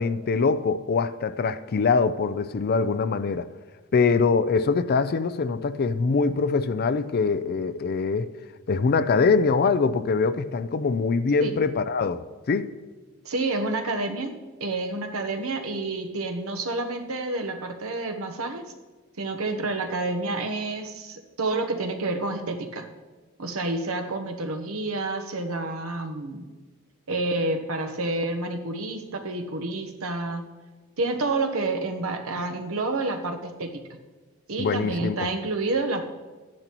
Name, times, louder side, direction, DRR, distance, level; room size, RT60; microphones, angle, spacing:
voice 1, 0.0-3.5 3.9-8.3 8.7-12.7 34.6-35.3, left 4 dB, 45° left, 0.4 m, -23 dB
voice 2, 13.2-14.3 14.6-18.7 19.2-22.9 23.4-26.5 27.1-30.5 31.0-33.8 34.5-36.0, right 2 dB, 80° right, 1.0 m, -29 dB
13.5 x 10.5 x 3.0 m
head